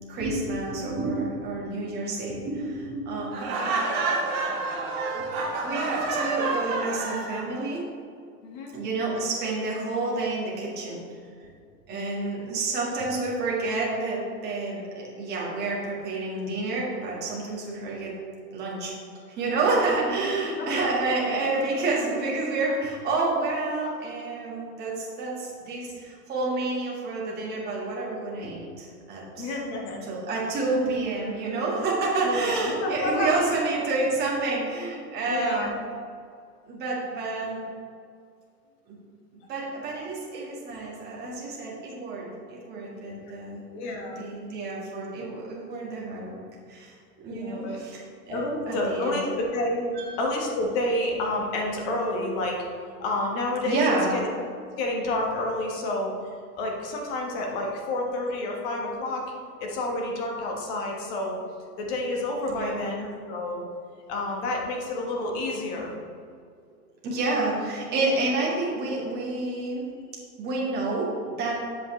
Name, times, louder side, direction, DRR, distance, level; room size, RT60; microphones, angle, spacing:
voice 1, 0.1-3.4 5.2-7.9 8.7-11.0 11.9-18.1 18.5-19.0 19.3-29.6 30.0-35.7 36.7-37.6 38.9-39.0 39.5-43.6 44.2-46.4 46.7-46.9 47.2-49.2 49.9-50.1 53.6-54.2 62.5-62.8 67.0-69.9 70.4-71.5, right 3 dB, 20° right, -4 dB, 1.7 m, -29 dB
Laughter, 3.3-7.4, right 3 dB, 40° right, 1.4 m, -28 dB
voice 2, 8.4-8.7 11.9-12.1 12.4-12.5 20.4-21.0 21.4-21.6 29.4-30.0 32.2-33.4 35.3-35.7 43.1-43.2 43.7-44.2 47.3-47.8 48.3-52.6 53.0-53.8 54.1-54.2 54.8-56.1 56.6-59.2 59.6-61.4 61.8-63.6 64.1-65.9, left 1 dB, 35° left, 0 dB, 1.4 m, -29 dB
7.7 x 7.3 x 3.2 m, 2.2 s
hypercardioid pair, 145°, 47 cm